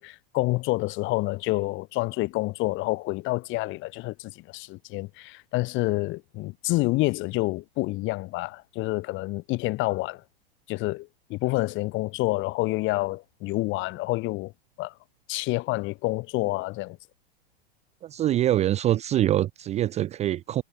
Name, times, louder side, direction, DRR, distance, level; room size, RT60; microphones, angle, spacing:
voice 1, 0.0-10.2 10.7-14.5 14.8-14.9 15.3-17.0, left 21 dB, 40° left, 1.8 m, -28 dB
voice 2, 18.0-20.6, right 13 dB, 20° right, 0.5 m, -24 dB
hypercardioid pair, 125°, 31 cm